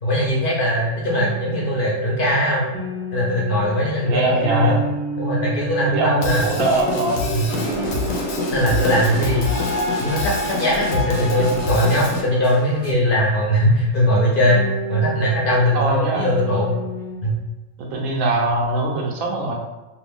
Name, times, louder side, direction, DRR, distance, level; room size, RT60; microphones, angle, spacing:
voice 1, 0.0-2.7 3.1-4.8 5.2-6.5 7.3-7.4 8.5-9.6 10.0-16.8 17.2-17.4, equal, 45° left, -4 dB, 0.9 m, -20 dB
sound 1, 1.1-9.6 9.8-13.3 14.5-17.2, right 2 dB, 15° left, 0.5 m, -32 dB
voice 2, 4.0-4.8 5.9-7.3 15.7-16.6 17.8-19.5, right 3 dB, 85° right, 0 dB, 1.1 m, -22 dB
Drum kit / Drum, 6.2-12.2, left 5 dB, 85° left, 1.0 m, -27 dB
sound 2, 7.5-12.9, right 1 dB, 45° right, 0.4 m, -29 dB
2.7 x 2.5 x 3.5 m, 1.1 s
omnidirectional pair, 1.3 m